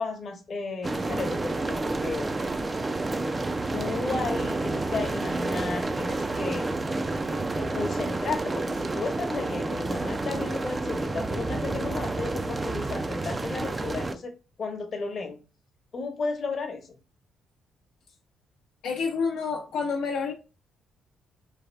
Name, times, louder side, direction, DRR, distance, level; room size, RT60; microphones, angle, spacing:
voice 1, 0.0-2.3 3.7-6.7 7.2-15.4 15.9-17.0, left 4 dB, 50° left, 0.8 m, -34 dB
sound 1, 0.8-14.2, right 2 dB, 25° right, 0.3 m, -29 dB
voice 2, 18.8-20.3, left 5 dB, 85° left, 0.6 m, -28 dB
3.4 x 2.4 x 3.3 m
cardioid pair, 90°, 0 cm